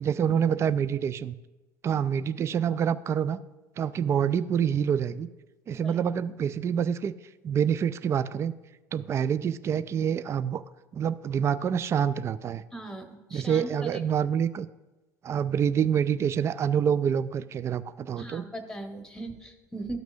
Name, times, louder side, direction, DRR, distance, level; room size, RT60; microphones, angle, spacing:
voice 1, 0.0-1.4 1.8-3.4 3.8-5.3 5.7-7.1 7.4-8.5 8.9-10.6 10.9-12.6 13.3-14.7 15.2-18.5, right 8 dB, 30° right, 15 dB, 0.3 m, -26 dB
voice 2, 12.7-14.0 18.2-20.0, right 2 dB, 5° left, 6 dB, 1.1 m, -39 dB
13.0 x 6.0 x 2.6 m, 1.1 s
figure-of-eight pair, 65°, 10 cm